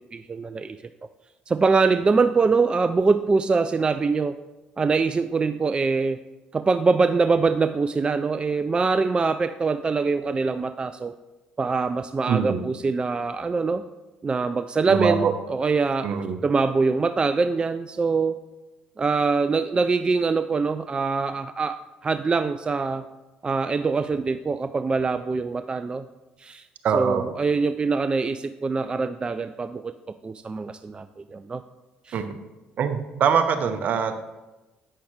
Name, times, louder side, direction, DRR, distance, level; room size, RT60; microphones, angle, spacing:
voice 1, 0.1-0.8 1.5-4.4 4.8-6.2 6.5-11.1 11.6-13.8 14.2-16.1 16.4-18.3 19.0-23.0 23.4-26.0 26.4-26.6 26.9-29.9 30.2-31.6 32.1-32.2, right 4 dB, 30° right, 10 dB, 0.3 m, -23 dB
voice 2, 12.3-12.6 14.9-15.3 16.0-16.4 26.8-27.2 32.1-32.4 32.8-34.1, right 7 dB, 60° right, 8 dB, 0.8 m, -23 dB
8.4 x 5.7 x 3.3 m, 1.1 s
hypercardioid pair, 60°, 3 cm